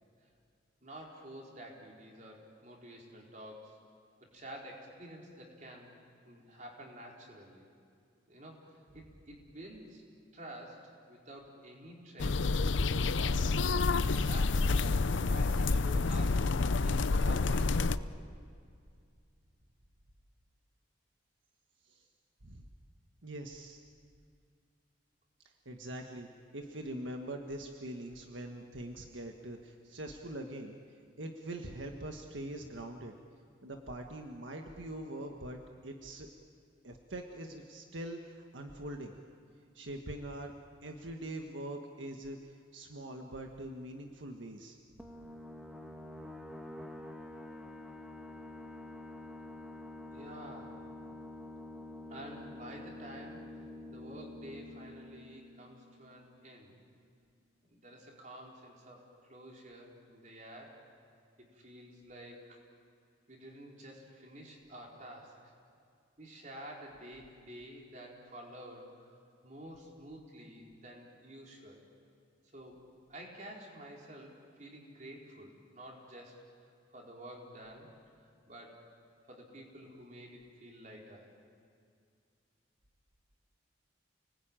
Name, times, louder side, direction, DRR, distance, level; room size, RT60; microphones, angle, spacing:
voice 1, 0.8-3.8 4.3-5.9 6.2-7.7 8.3-10.0 10.3-12.5 12.9-16.4 16.8-18.3 50.1-50.8 52.1-53.5 53.9-56.7 57.7-60.8 61.4-62.6 63.3-65.5 66.2-68.9 69.4-71.8 72.5-77.9 78.4-78.8 79.3-81.3, right 1 dB, 40° right, -1 dB, 4.5 m, -50 dB
sound 1, 12.2-18.0, left 3 dB, 80° left, 0.6 m, -28 dB
voice 2, 23.2-23.8 25.6-26.3 26.5-30.8 31.2-33.1 33.6-36.3 36.8-39.1 39.7-40.5 40.8-44.8, right 1 dB, 85° right, 3 dB, 1.5 m, -43 dB
sound 2, 45.0-56.3, left 1 dB, 5° right, 1.5 m, -47 dB
29.5 x 20.0 x 9.0 m, 2.3 s
head